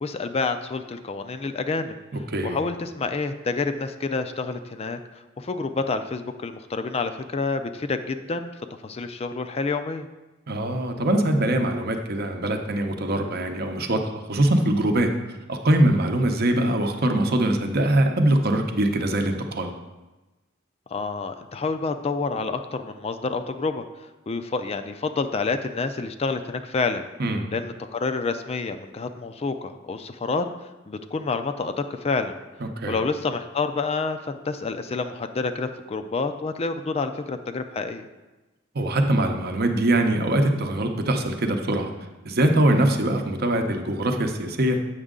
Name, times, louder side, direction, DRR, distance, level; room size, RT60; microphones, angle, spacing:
voice 1, 0.0-1.9 2.4-8.5 8.8-10.1 20.9-23.8 24.3-27.0 27.5-32.3 32.9-38.1, left 4 dB, 30° left, 8 dB, 0.4 m, -28 dB
voice 2, 2.1-2.6 10.5-14.0 14.3-15.1 15.5-19.7 27.2-27.4 32.6-33.0 38.7-41.9 42.2-44.8, right 1 dB, 55° right, 5 dB, 0.8 m, -22 dB
8.0 x 6.2 x 3.7 m, 1.1 s
head